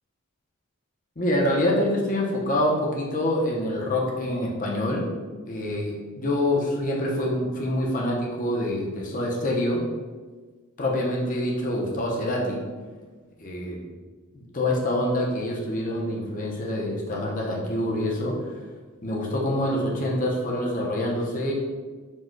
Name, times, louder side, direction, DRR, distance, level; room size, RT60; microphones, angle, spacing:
voice 1, 1.2-5.1 5.5-9.8 10.8-12.6 13.4-13.9 14.3-18.6 19.0-21.5, left 1 dB, 35° left, -2 dB, 0.7 m, -26 dB
4.4 x 2.3 x 4.5 m, 1.4 s
head